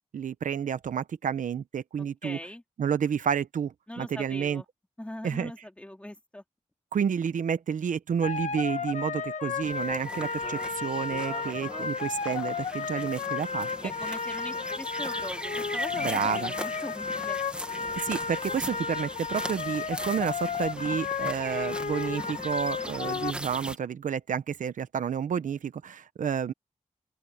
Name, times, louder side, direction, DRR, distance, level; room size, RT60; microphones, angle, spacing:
voice 1, 0.1-2.4 2.8-4.6 5.2-5.5 6.9-13.7 16.0-16.5 18.0-26.5, right 7 dB, 90° right, 0.9 m, -30 dB
voice 2, 2.0-2.6 3.9-4.7 5.0-6.4 13.8-17.4, left 1 dB, 10° left, 4.2 m, -41 dB
sound 1, 8.2-23.3, left 5 dB, 65° left, 1.9 m, -33 dB
sound 2, 9.6-23.8, right 1 dB, 10° right, 1.7 m, -40 dB
open air
wide cardioid pair, 110°, 13 cm